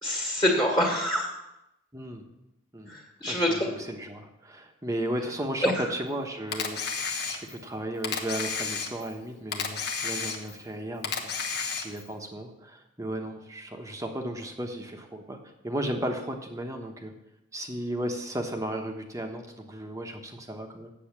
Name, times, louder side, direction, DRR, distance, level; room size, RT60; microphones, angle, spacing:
voice 1, 0.0-1.3 2.9-3.7 5.6-5.9, equal, 20° left, -1 dB, 2.0 m, -26 dB
voice 2, 3.3-15.4 15.6-17.1 17.5-20.9, right 1 dB, 15° right, 3 dB, 1.1 m, -35 dB
Camera, 6.5-7.7 8.0-9.2 9.5-10.7 11.0-12.1, left 5 dB, 55° left, 1.2 m, -32 dB
8.6 x 7.3 x 7.3 m, 0.88 s
head